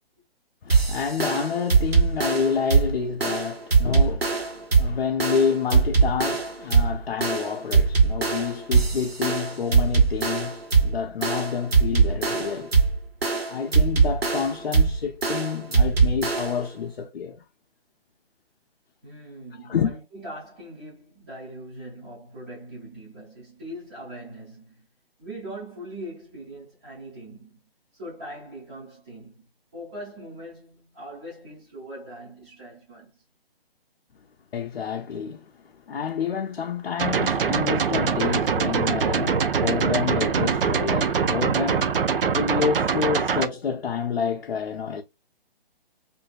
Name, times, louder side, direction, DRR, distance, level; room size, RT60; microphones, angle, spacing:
voice 1, 0.6-12.7 13.5-17.4 19.6-19.9 34.5-45.0, left 6 dB, 65° left, 0.5 m, -28 dB
sound 1, 0.7-16.7, right 5 dB, 85° right, 1.2 m, -22 dB
voice 2, 19.0-24.9 25.2-27.6 27.9-29.5 29.7-33.1, right 1 dB, 10° right, 0.4 m, -41 dB
sound 2, 37.0-43.5, right 6 dB, 65° right, 0.5 m, -23 dB
2.7 x 2.5 x 2.4 m
figure-of-eight pair, 135°, 30 cm